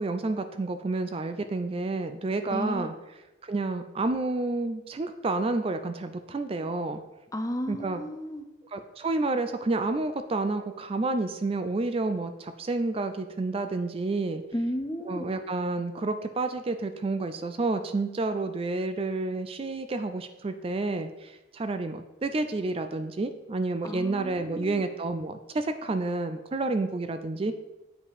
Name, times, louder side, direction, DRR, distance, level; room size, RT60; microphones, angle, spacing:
voice 1, 0.0-2.9 3.4-7.0 7.7-8.0 8.7-14.4 15.0-27.5, right 3 dB, 30° right, 9 dB, 0.4 m, -30 dB
voice 2, 2.5-2.9 7.3-8.4 14.5-15.3 23.8-24.8, equal, 15° left, 8 dB, 0.6 m, -33 dB
8.4 x 5.0 x 4.9 m, 1.0 s
head